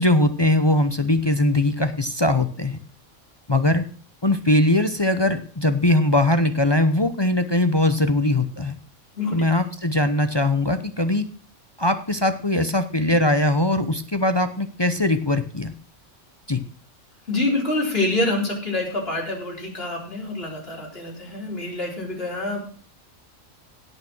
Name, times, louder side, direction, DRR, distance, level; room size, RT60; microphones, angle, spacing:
voice 1, 0.0-2.8 3.5-3.8 4.2-8.8 9.3-11.3 11.8-15.7 16.5-16.6, left 1 dB, 25° left, 9 dB, 0.8 m, -21 dB
voice 2, 9.1-9.6 17.3-22.6, left 2 dB, 50° left, -1 dB, 4.5 m, -26 dB
17.0 x 6.0 x 6.2 m, 0.42 s
omnidirectional pair, 1.3 m